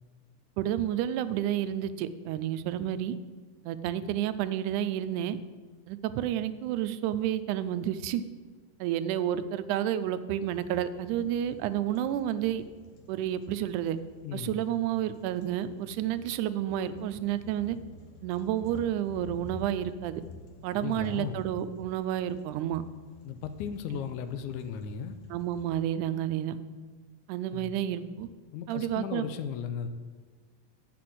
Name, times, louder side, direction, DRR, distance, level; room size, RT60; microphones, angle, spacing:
voice 1, 0.6-3.2 3.6-5.4 5.9-8.2 8.8-12.6 13.1-14.0 14.3-17.8 18.2-20.2 20.6-22.8 25.3-26.6 27.3-28.3 28.7-29.3, right 11 dB, 85° right, 13 dB, 2.0 m, -30 dB
sound 1, 10.4-25.8, left 2 dB, 65° left, 1.5 m, -51 dB
voice 2, 14.2-14.7 20.8-21.5 23.2-25.2 27.5-27.7 28.5-29.9, left 7 dB, 85° left, 10 dB, 2.1 m, -36 dB
8.2 x 6.0 x 7.7 m, 1.4 s
omnidirectional pair, 3.5 m